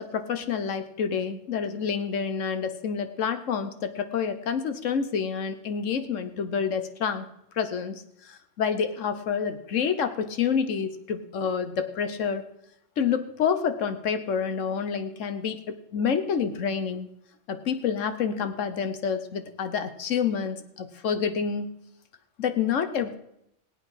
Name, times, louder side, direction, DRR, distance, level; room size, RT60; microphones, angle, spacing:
voice 1, 0.0-7.3 7.6-12.4 13.0-15.6 15.9-17.1 17.5-21.7 22.4-23.1, left 6 dB, 65° left, 9 dB, 1.2 m, -28 dB
18.5 x 8.5 x 4.9 m, 0.79 s
omnidirectional pair, 1.4 m